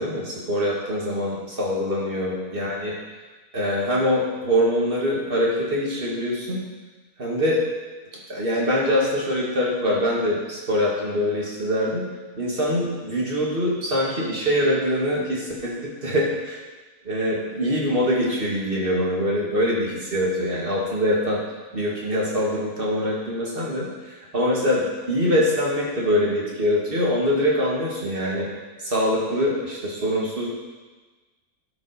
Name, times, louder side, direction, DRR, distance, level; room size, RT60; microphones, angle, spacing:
voice 1, 0.0-2.9 3.5-6.6 7.2-7.6 8.3-12.1 12.3-16.6 17.0-21.4 21.7-28.5 28.8-30.5, equal, 35° right, -4 dB, 2.3 m, -24 dB
12.0 x 5.7 x 5.1 m, 1.3 s
omnidirectional pair, 1.7 m